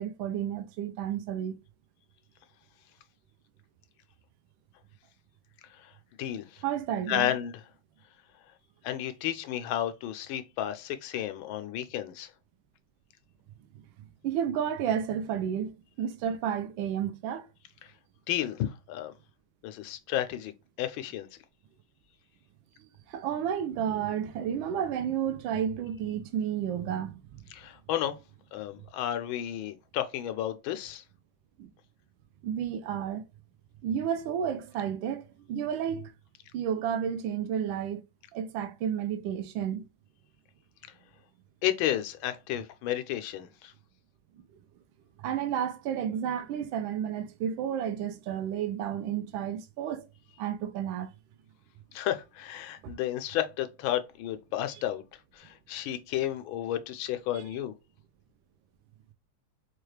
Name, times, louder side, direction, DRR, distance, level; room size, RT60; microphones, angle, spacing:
voice 1, 0.0-1.6 6.6-7.3 14.2-17.5 23.1-27.4 31.6-31.7 32.4-33.2 33.8-35.2 35.5-36.1 36.5-38.0 38.3-39.8 45.2-50.0 50.4-51.1 52.8-52.9 57.3-57.4, right 9 dB, 80° right, 1.3 m, -31 dB
voice 2, 6.2-6.6 7.1-7.6 8.8-12.3 18.3-19.1 19.6-20.5 20.8-21.3 27.5-28.2 28.5-31.0 41.6-43.7 51.9-55.0 55.3-57.7, left 12 dB, 85° left, 1.4 m, -32 dB
4.6 x 2.3 x 3.2 m
omnidirectional pair, 2.2 m